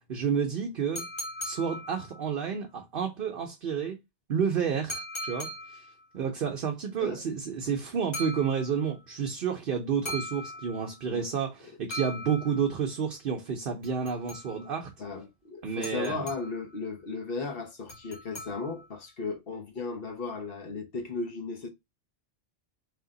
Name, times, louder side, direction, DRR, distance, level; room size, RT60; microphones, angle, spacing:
voice 1, 0.1-1.1 1.4-4.0 4.3-5.9 6.1-14.9 15.6-16.2, right 7 dB, 60° right, 0.8 m, -30 dB
Wine Glass Toast Clink, 1.0-2.4 4.9-6.0 8.1-9.0 10.1-11.1 11.9-12.9 13.8-14.8 15.8-16.7 17.9-19.0, left 1 dB, 75° left, 1.8 m, -40 dB
voice 2, 15.0-21.7, left 4 dB, 60° left, 1.1 m, -36 dB
3.3 x 2.9 x 3.7 m
omnidirectional pair, 1.1 m